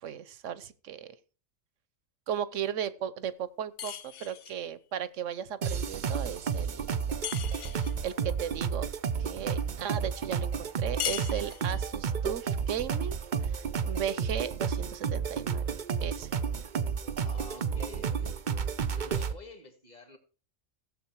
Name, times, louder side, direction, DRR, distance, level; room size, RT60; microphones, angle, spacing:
voice 1, 0.0-1.1 2.3-7.0 8.0-8.9 9.2-13.2 13.4-16.3, right 9 dB, 70° right, 1.2 m, -36 dB
sound 1, 3.8-4.6 7.2-8.0 11.0-11.9, left 11 dB, 70° left, 1.0 m, -37 dB
sound 2, 5.6-19.3, right 6 dB, 45° right, 0.7 m, -31 dB
voice 2, 17.2-18.5 19.0-20.2, left 2 dB, 30° left, 2.0 m, -48 dB
16.0 x 7.8 x 4.6 m
omnidirectional pair, 1.3 m